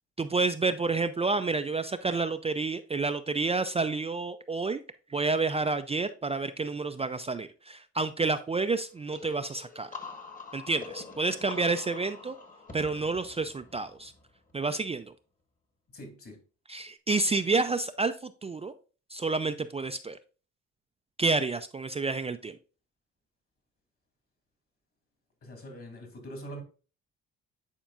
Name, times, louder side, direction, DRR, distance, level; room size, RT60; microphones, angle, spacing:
voice 1, 0.2-4.8 5.1-9.9 10.5-12.4 12.7-14.1 14.5-15.1 16.7-18.7 19.1-20.2 21.2-22.6, right 3 dB, 20° right, 9 dB, 0.4 m, -29 dB
sound 1, 9.1-14.7, left 4 dB, 25° left, 1.3 m, -45 dB
voice 2, 15.9-16.4 25.4-26.6, right 1 dB, 50° left, 3 dB, 2.7 m, -43 dB
10.0 x 4.4 x 2.5 m, 0.36 s
cardioid pair, 90°, 30 cm